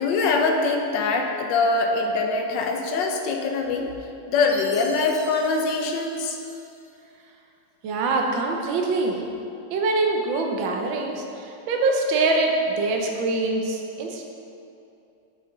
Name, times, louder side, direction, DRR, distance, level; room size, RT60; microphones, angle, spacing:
voice 1, 0.0-3.9 4.3-6.4, left 3 dB, 75° left, 2 dB, 1.3 m, -23 dB
Chime, 4.5-6.9, left 1 dB, 50° left, 1.1 m, -43 dB
voice 2, 7.8-9.2 9.7-14.2, right 3 dB, 85° right, 1 dB, 1.5 m, -24 dB
6.7 x 5.1 x 3.8 m, 2.7 s
omnidirectional pair, 2.1 m